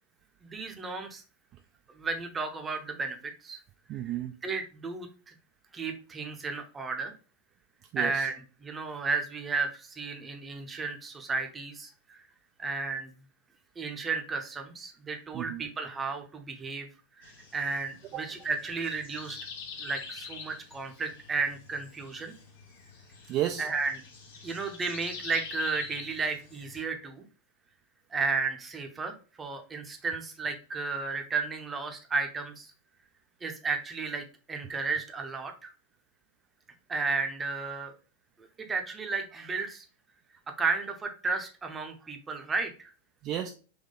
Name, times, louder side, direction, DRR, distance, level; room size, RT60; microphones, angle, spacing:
voice 1, 0.4-1.2 2.0-3.6 4.4-5.3 5.7-7.1 8.0-12.2 12.6-13.1 13.8-16.9 17.2-19.4 19.8-22.3 23.6-24.0 24.4-27.2 28.1-32.7 33.4-35.7 36.9-37.9 38.7-39.8 40.5-42.9, right 4 dB, 15° right, 5 dB, 0.7 m, -33 dB
voice 2, 3.9-4.3 7.9-8.3 15.3-15.6 18.1-18.2 23.3-23.7 43.2-43.5, right 12 dB, 35° right, 4 dB, 0.3 m, -32 dB
sound 1, 17.2-26.8, left 5 dB, 60° left, 1.1 m, -46 dB
3.6 x 3.1 x 3.7 m, 0.36 s
figure-of-eight pair, 90°, 0 cm